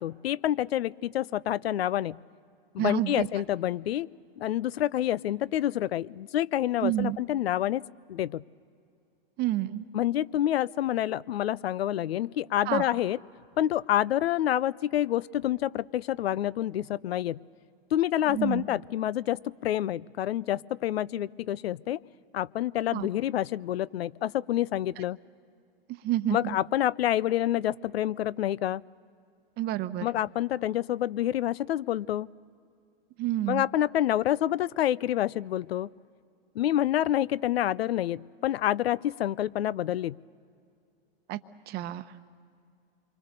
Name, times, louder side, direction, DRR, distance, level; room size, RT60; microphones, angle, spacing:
voice 1, 0.0-2.2 2.7-4.1 4.4-7.8 8.1-8.4 9.9-13.2 13.6-17.4 17.9-22.0 22.3-25.2 26.3-28.8 30.0-32.3 33.5-35.9 36.6-40.2, left 12 dB, 85° left, 23 dB, 0.5 m, -28 dB
voice 2, 2.8-3.3 6.8-7.2 9.4-9.9 12.7-12.8 18.3-18.6 22.9-23.1 26.0-26.4 29.6-30.1 33.2-33.6 41.3-41.4 41.7-42.3, right 14 dB, 35° right, 11 dB, 0.9 m, -29 dB
27.0 x 24.0 x 6.7 m, 2.4 s
hypercardioid pair, 125°, 30 cm